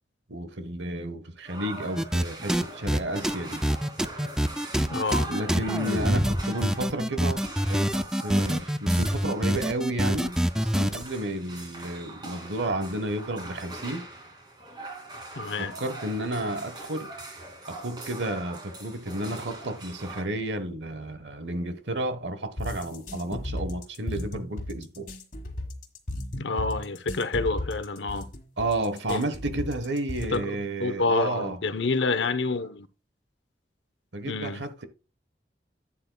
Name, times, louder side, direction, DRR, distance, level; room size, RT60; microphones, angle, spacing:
voice 1, 0.3-3.6 5.3-14.1 15.6-17.1 17.7-25.1 28.6-31.6 34.1-34.9, right 1 dB, 80° right, 1.2 m, -32 dB
sound 1, 1.4-20.2, right 2 dB, 25° right, 2.5 m, -42 dB
sound 2, 2.0-2.2 2.5-11.0, equal, 5° right, 0.3 m, -25 dB
voice 2, 4.9-5.3 15.4-15.7 26.4-28.3 29.1-29.2 30.3-30.4 30.8-32.9 34.2-34.6, left 3 dB, 85° left, 0.9 m, -28 dB
sound 3, 22.6-30.6, left 1 dB, 45° left, 1.6 m, -35 dB
12.0 x 8.8 x 2.3 m
head